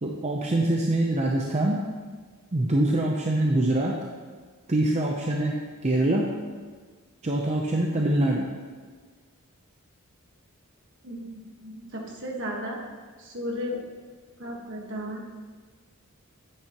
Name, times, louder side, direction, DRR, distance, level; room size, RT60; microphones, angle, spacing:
voice 1, 0.0-1.8 2.5-3.9 4.7-5.5 5.8-6.3 7.2-8.5, right 1 dB, 30° right, -1 dB, 0.6 m, -24 dB
voice 2, 11.0-12.8 13.2-13.8 14.4-15.2, equal, 55° right, 0 dB, 1.5 m, -34 dB
9.9 x 8.7 x 3.0 m, 1.5 s
head